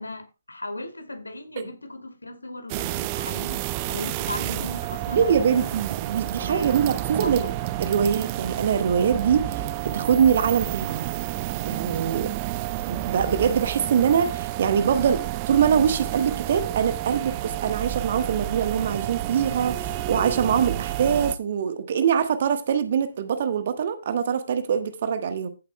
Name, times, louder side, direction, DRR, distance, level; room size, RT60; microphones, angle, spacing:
voice 1, 0.0-5.8 6.2-7.5, left 1 dB, 75° left, 2.5 m, -37 dB
sound 1, 2.7-21.4, right 15 dB, 25° right, 0.5 m, -30 dB
voice 2, 5.1-7.5 7.8-11.1 11.6-12.3 12.8-25.5, right 7 dB, 40° right, 1.3 m, -23 dB
15.5 x 8.0 x 2.2 m
figure-of-eight pair, 135°, 0 cm